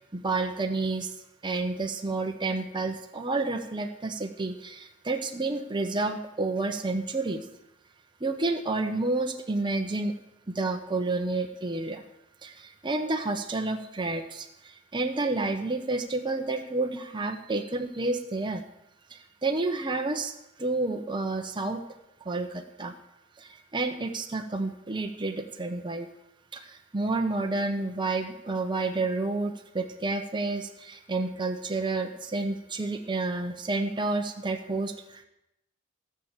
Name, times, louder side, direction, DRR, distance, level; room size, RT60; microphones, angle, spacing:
voice 1, 0.1-1.1 1.4-7.4 8.2-10.1 10.5-12.0 12.4-18.6 19.1-20.3 20.6-21.8 22.3-22.9 23.4-26.1 26.5-35.2, right 3 dB, 25° right, 4 dB, 0.8 m, -30 dB
15.0 x 6.7 x 7.3 m, 0.86 s
head